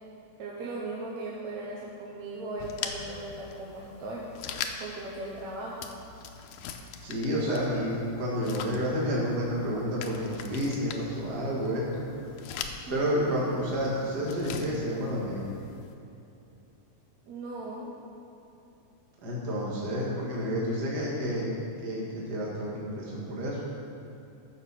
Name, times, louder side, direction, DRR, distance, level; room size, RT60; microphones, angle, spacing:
voice 1, 0.4-4.3 4.8-5.9 17.3-17.9, right 2 dB, 65° right, -4 dB, 2.2 m, -38 dB
sound 1, 2.6-15.9, left 7 dB, 85° left, 2.2 m, -42 dB
voice 2, 7.0-12.0 12.9-15.6 19.2-21.6 21.8-23.6, equal, 35° right, -5 dB, 2.3 m, -30 dB
13.5 x 6.8 x 6.0 m, 2.7 s
omnidirectional pair, 3.6 m